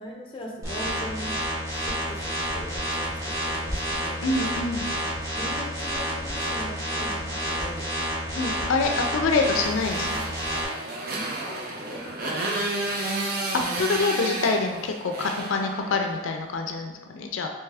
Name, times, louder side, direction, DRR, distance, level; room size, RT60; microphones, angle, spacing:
voice 1, 0.0-1.4 1.7-4.3 5.4-7.9 11.1-12.9, equal, 25° left, -1 dB, 0.5 m, -40 dB
sound 1, 0.6-10.6, equal, 15° right, 0.8 m, -29 dB
voice 2, 4.2-4.9 8.3-10.1 13.5-17.5, left 3 dB, 80° left, 4 dB, 0.4 m, -26 dB
Motorcycle, 9.6-16.3, right 2 dB, 50° right, 0.5 m, -31 dB
3.4 x 3.1 x 3.3 m, 1.1 s
head